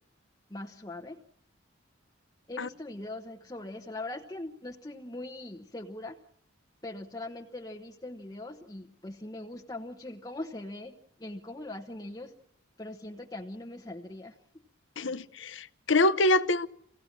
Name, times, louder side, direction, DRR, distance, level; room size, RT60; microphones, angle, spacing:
voice 1, 0.5-1.2 2.5-6.2 6.8-12.3 12.8-14.4, left 2 dB, 20° left, 1.0 m, -41 dB
voice 2, 15.0-16.7, left 2 dB, 70° left, 0.8 m, -25 dB
25.0 x 16.5 x 7.4 m
head